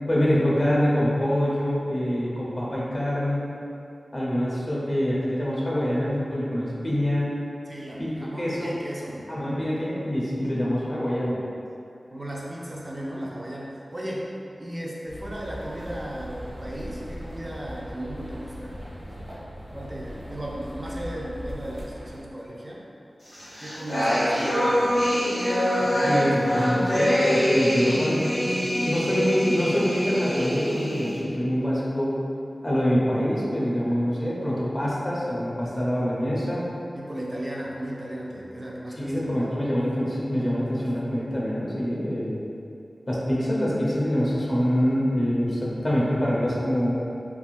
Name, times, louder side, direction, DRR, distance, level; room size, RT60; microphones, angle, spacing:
voice 1, 0.1-3.5 4.1-7.3 8.0-8.1 8.4-8.7 9.3-11.4 26.0-32.2 32.6-36.7 39.0-42.4 43.1-46.9, equal, 40° left, -6 dB, 0.8 m, -25 dB
voice 2, 7.7-9.3 12.1-14.3 14.6-18.7 19.7-22.8 23.6-25.3 25.8-26.6 33.8-34.0 36.9-39.6, right 1 dB, 30° right, -4 dB, 0.4 m, -36 dB
sound 1, 15.1-22.2, equal, 70° right, 0.9 m, -39 dB
sound 2, 23.3-31.2, equal, 90° left, 1.4 m, -24 dB
3.5 x 2.6 x 2.5 m, 2.6 s
wide cardioid pair, 55°, 0 cm